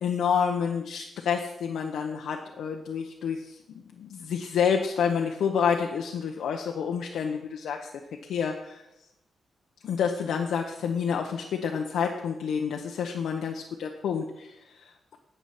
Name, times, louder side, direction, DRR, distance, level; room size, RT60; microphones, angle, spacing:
voice 1, 0.0-3.6 4.0-7.9 8.2-8.8 9.8-15.2, left 7 dB, 85° left, 2 dB, 0.9 m, -29 dB
9.5 x 8.0 x 6.0 m, 0.89 s
wide cardioid pair, 150°, 0 cm